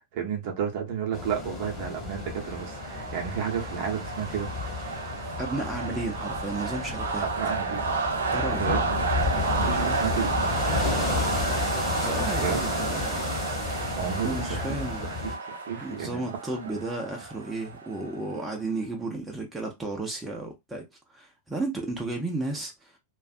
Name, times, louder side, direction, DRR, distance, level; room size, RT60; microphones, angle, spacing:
voice 1, 0.0-4.5 7.2-7.8 8.6-9.1 9.5-10.3 12.4-12.8 14.0-16.2, right 7 dB, 45° right, 0.8 m, -32 dB
sound 1, 1.1-15.4, left 4 dB, 25° left, 1.3 m, -32 dB
sound 2, 1.8-18.4, right 4 dB, 65° right, 0.4 m, -31 dB
voice 2, 5.4-7.3 8.2-8.7 11.1-11.5 12.0-13.3 14.2-15.1 15.8-20.9 21.1-23.0, right 2 dB, 10° right, 0.6 m, -33 dB
2.5 x 2.3 x 2.4 m
figure-of-eight pair, 90°, 0 cm